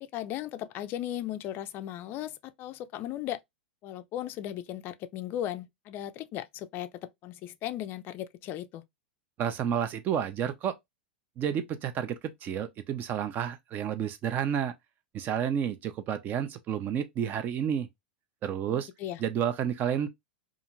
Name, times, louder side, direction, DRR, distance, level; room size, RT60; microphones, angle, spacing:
voice 1, 0.0-3.4 3.8-8.9 18.7-19.2, left 12 dB, 40° left, 0.4 m, -37 dB
voice 2, 9.4-10.7 11.4-14.7 15.1-17.9 18.4-18.9 19.2-20.1, right 9 dB, 35° right, 0.5 m, -30 dB
2.5 x 2.5 x 2.9 m
hypercardioid pair, 105°, 5 cm